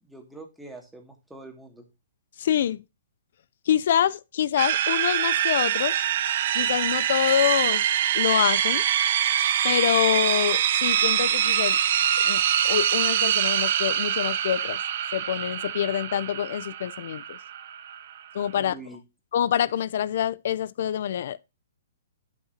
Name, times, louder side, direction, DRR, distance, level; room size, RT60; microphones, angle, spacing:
voice 1, 0.0-1.9 18.6-19.0, right 2 dB, 5° right, 2.2 m, -44 dB
voice 2, 2.4-2.8 3.7-6.0 6.5-7.8 8.1-8.8 9.6-11.8 12.2-14.8 15.1-17.4 18.3-18.8 19.3-21.4, left 10 dB, 60° left, 0.5 m, -26 dB
sound 1, 4.6-18.6, right 10 dB, 55° right, 0.9 m, -24 dB
12.5 x 6.0 x 2.8 m
hypercardioid pair, 145°, 0 cm